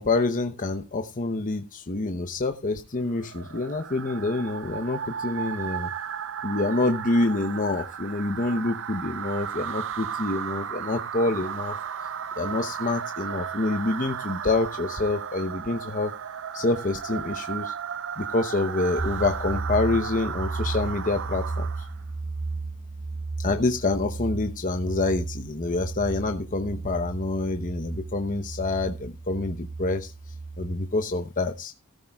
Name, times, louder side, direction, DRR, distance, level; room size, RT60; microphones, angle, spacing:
voice 1, 0.0-5.9 6.4-11.8 12.4-16.1 16.5-17.7 18.2-21.7 23.4-30.1 30.6-31.7, left 2 dB, 40° left, 6 dB, 0.9 m, -27 dB
sound 1, 3.1-22.0, right 8 dB, 65° right, 0.7 m, -35 dB
sound 2, 19.0-30.8, right 3 dB, 25° right, 1.2 m, -34 dB
14.5 x 13.0 x 2.3 m, 0.27 s
head